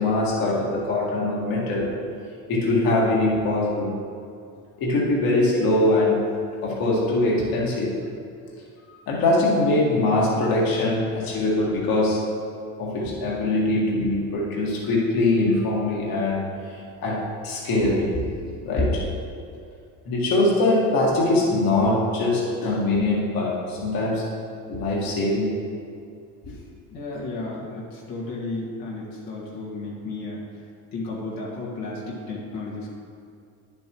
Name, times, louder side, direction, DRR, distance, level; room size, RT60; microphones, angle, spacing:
voice 1, 0.0-2.0 2.5-4.0 4.8-6.2 6.6-8.0 8.9-12.2 12.8-18.3 18.6-19.1 20.1-24.3 24.7-25.6, left 2 dB, 65° left, -4 dB, 1.9 m, -22 dB
voice 2, 26.9-30.4 30.9-33.0, left 2 dB, 85° left, -5 dB, 1.9 m, -33 dB
10.0 x 7.5 x 3.0 m, 2.4 s
cardioid pair, 110°, 38 cm